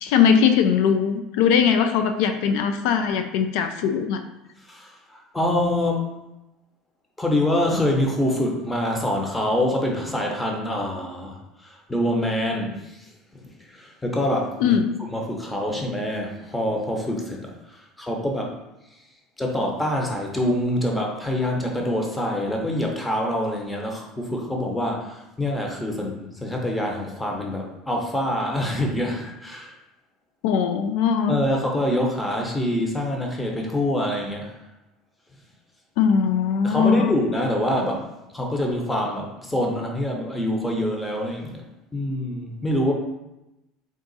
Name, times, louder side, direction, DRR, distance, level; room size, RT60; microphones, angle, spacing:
voice 1, 0.0-4.2 14.6-15.0 30.4-31.4 36.0-37.1, left 7 dB, 75° left, 7 dB, 0.3 m, -20 dB
voice 2, 4.6-6.0 7.2-14.8 15.1-18.5 19.4-29.7 31.3-34.5 36.6-38.1 38.3-41.6 41.9-42.9, left 1 dB, 10° left, 0 dB, 0.7 m, -25 dB
3.7 x 2.4 x 3.9 m, 0.94 s
supercardioid pair, 125°, 0 cm